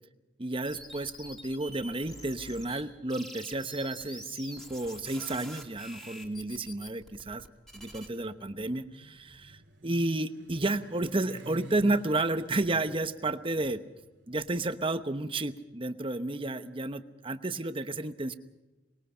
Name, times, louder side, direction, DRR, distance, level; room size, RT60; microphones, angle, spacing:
voice 1, 0.4-7.5 7.7-13.8 14.3-18.3, right 2 dB, 30° right, 10 dB, 1.0 m, -32 dB
sound 1, 0.6-2.8 3.1-8.1, equal, ahead, 2.5 m, -46 dB
Motorcycle, 8.1-16.1, right 1 dB, 75° right, 2.5 m, -52 dB
24.5 x 21.0 x 5.7 m, 1.1 s
head